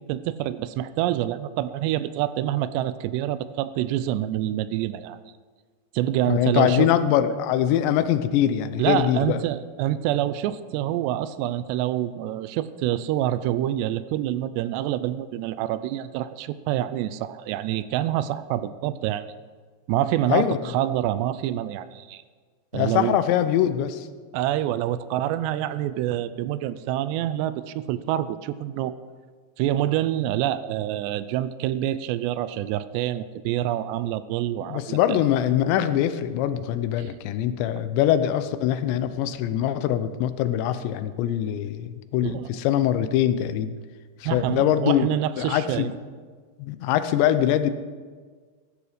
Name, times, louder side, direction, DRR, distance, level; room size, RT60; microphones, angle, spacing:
voice 1, 0.0-5.2 5.9-6.9 8.8-19.3 19.9-22.2 22.7-23.2 24.3-28.9 29.6-35.2 37.0-37.1 42.2-42.5 44.3-45.9, right 12 dB, 85° right, 14 dB, 2.7 m, -26 dB
voice 2, 6.3-9.4 20.3-20.6 22.7-24.1 34.6-43.7 44.2-45.1 45.4-45.9 46.6-47.7, left 11 dB, 85° left, 12 dB, 3.0 m, -23 dB
14.5 x 13.5 x 5.0 m, 1.5 s
omnidirectional pair, 5.0 m